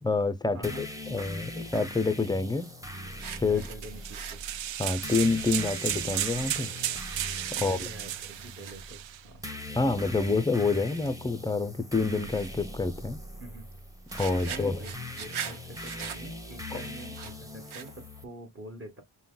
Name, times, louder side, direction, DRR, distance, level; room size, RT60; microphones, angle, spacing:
voice 1, 0.0-2.7 3.4-3.6 4.8-6.7 7.5-7.8 9.8-13.2 14.2-14.8, left 3 dB, 10° left, 0.4 m, -27 dB
voice 2, 0.5-0.9 3.5-4.5 7.5-9.4 13.4-13.7 14.3-14.9 15.2-19.0, right 1 dB, 30° right, 1.3 m, -45 dB
sound 1, 0.6-18.2, left 1 dB, 5° right, 0.9 m, -41 dB
sound 2, 2.5-2.7 3.1-3.8 4.0-5.1 5.6-5.7 6.1-6.2 7.0-7.1 7.4-7.8 8.1-9.0 9.4-9.5 9.8-10.1 10.9-11.1 11.5-11.6 12.3-12.5 13.7-13.8 14.1-18.1, right 8 dB, 80° right, 1.0 m, -42 dB
sound 3, 3.8-9.2, right 12 dB, 65° right, 0.5 m, -34 dB
5.5 x 2.2 x 3.7 m
wide cardioid pair, 105°, 48 cm